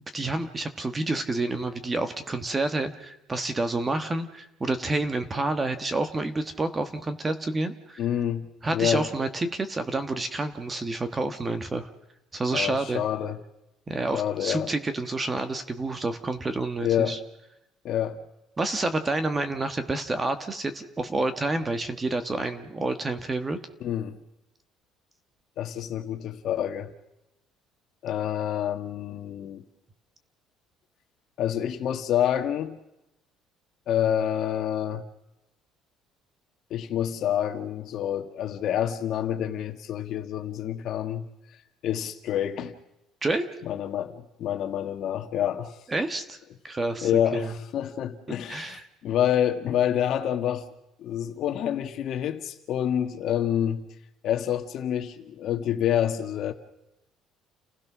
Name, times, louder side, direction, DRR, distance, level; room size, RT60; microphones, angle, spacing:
voice 1, 0.1-8.0 8.6-11.9 12.3-13.0 13.9-17.2 18.6-23.6 43.2-43.4 45.9-46.4 46.6-47.5 48.5-48.8, right 2 dB, 15° right, 9 dB, 1.4 m, -29 dB
voice 2, 8.0-9.1 12.5-13.4 14.1-14.7 16.8-17.2 17.8-18.2 23.8-24.2 25.6-26.9 28.0-29.6 31.4-32.8 33.9-35.0 36.7-41.2 41.8-42.7 43.6-45.8 47.0-50.6 51.0-53.8 54.2-56.5, left 10 dB, 50° left, 7 dB, 1.8 m, -27 dB
30.0 x 16.5 x 6.2 m, 0.90 s
cardioid pair, 155°, 0 cm